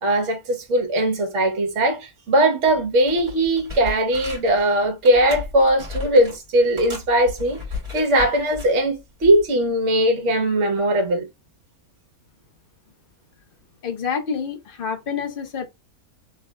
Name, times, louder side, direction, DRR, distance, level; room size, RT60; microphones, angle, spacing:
voice 1, 0.0-7.6 7.9-11.3, right 1 dB, 55° right, 1.3 m, -20 dB
sound 1, 2.7-2.8 3.1-4.6 5.0-6.4 6.8-8.7 9.2-9.4, left 4 dB, 25° right, 2.2 m, -35 dB
voice 2, 13.8-15.7, left 6 dB, 45° left, 0.9 m, -28 dB
3.3 x 3.3 x 2.3 m
omnidirectional pair, 1.6 m